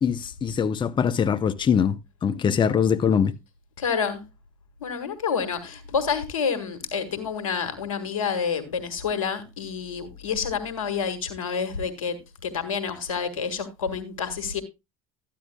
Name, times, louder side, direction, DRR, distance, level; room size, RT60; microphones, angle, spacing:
voice 1, 0.0-3.3, left 7 dB, 30° left, 0.7 m, -23 dB
voice 2, 3.8-4.2 4.8-14.6, left 6 dB, 85° left, 1.7 m, -28 dB
13.5 x 10.0 x 2.2 m
hypercardioid pair, 75°, 17 cm